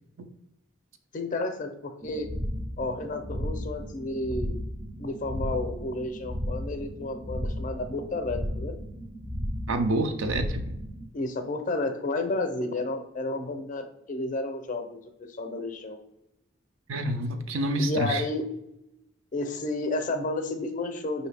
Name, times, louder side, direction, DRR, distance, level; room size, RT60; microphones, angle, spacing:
voice 1, 1.1-2.3 2.8-4.6 5.0-8.8 11.1-15.0 15.3-16.0 17.8-18.4 19.3-21.3, left 2 dB, 40° left, 6 dB, 0.5 m, -31 dB
sound 1, 2.0-11.1, equal, 20° right, 0.5 m, -34 dB
voice 2, 9.7-10.8 16.9-18.2, right 1 dB, 85° right, 7 dB, 0.6 m, -28 dB
5.5 x 2.7 x 3.3 m, 0.84 s
head